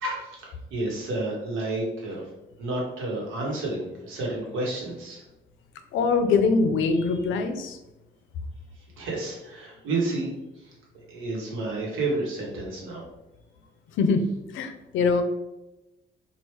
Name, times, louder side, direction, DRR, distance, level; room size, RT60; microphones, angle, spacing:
voice 1, 0.0-2.3 2.6-5.2 9.0-10.3 10.6-10.7 11.1-13.0, right 2 dB, 85° right, -3 dB, 1.1 m, -30 dB
voice 2, 5.9-7.8 14.0-14.2 14.5-15.2, left 4 dB, 80° left, 7 dB, 0.5 m, -23 dB
3.1 x 2.4 x 3.2 m, 0.98 s
cardioid pair, 90°, 20 cm